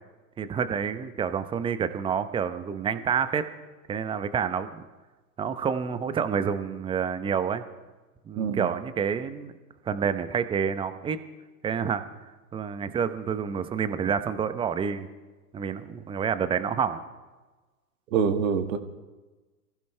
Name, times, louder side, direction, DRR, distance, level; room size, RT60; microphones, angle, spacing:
voice 1, 0.4-3.4 3.9-4.8 5.4-7.6 8.3-9.5 9.9-11.2 11.6-12.0 12.5-15.1 15.5-17.0, right 7 dB, 10° right, 11 dB, 0.8 m, -28 dB
voice 2, 8.4-8.7 18.1-18.8, right 6 dB, 60° right, 7 dB, 1.8 m, -25 dB
26.0 x 15.5 x 3.3 m, 1.2 s
hypercardioid pair, 115°, 45 cm